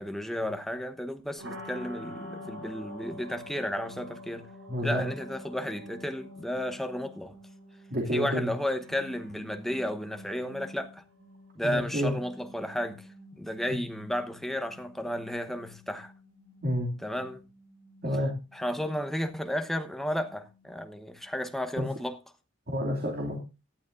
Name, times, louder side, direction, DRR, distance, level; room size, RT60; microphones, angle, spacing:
voice 1, 0.0-4.5 4.8-7.4 8.1-11.0 11.6-13.1 13.3-16.1 17.0-17.4 18.5-22.2, equal, ahead, 1.0 m, -33 dB
sound 1, 1.4-21.2, left 1 dB, 80° right, 6.4 m, -48 dB
voice 2, 4.7-5.0 7.9-8.5 11.6-12.1 16.6-16.9 18.0-18.3 21.8-21.9 22.7-23.4, equal, 50° right, 2.5 m, -29 dB
18.0 x 11.5 x 2.6 m
head